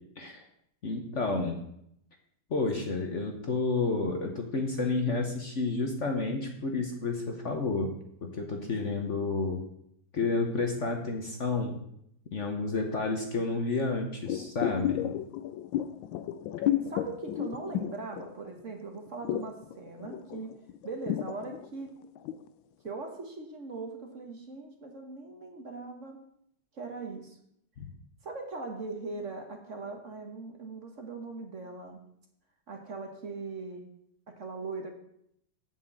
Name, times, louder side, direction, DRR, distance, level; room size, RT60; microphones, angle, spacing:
voice 1, 0.8-1.6 2.5-7.9 8.2-9.6 10.1-11.8 12.3-15.1 27.8-27.9, left 3 dB, 45° left, 3 dB, 1.2 m, -30 dB
sound 1, 14.3-18.7 18.9-22.5 22.9-23.0, left 12 dB, 85° left, 1.3 m, -32 dB
voice 2, 16.6-20.6 20.8-22.1 22.8-26.2 26.7-27.4 28.2-32.0 32.7-33.9 34.3-34.9, right 3 dB, 45° right, 3 dB, 1.4 m, -40 dB
7.5 x 6.3 x 7.8 m, 0.73 s
omnidirectional pair, 2.1 m